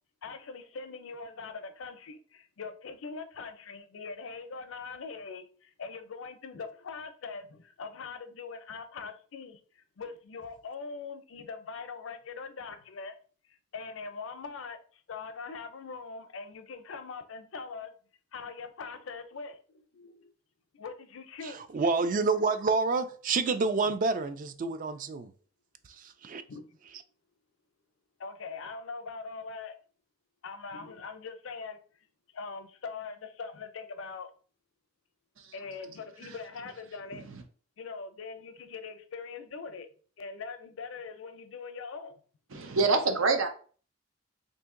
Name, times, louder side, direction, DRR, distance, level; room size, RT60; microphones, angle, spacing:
voice 1, 0.2-13.1 13.5-17.9 18.3-20.3 20.7-21.7 23.8-23.9 26.5-26.8 28.2-29.7 30.4-31.8 32.3-34.3 35.5-37.3 37.8-39.9 40.2-42.2, left 4 dB, 75° left, 0.5 m, -42 dB
voice 2, 21.4-25.3 25.9-26.4, right 4 dB, 40° right, 0.3 m, -28 dB
voice 3, 42.5-43.5, right 4 dB, 85° right, 0.6 m, -27 dB
2.8 x 2.7 x 3.6 m
head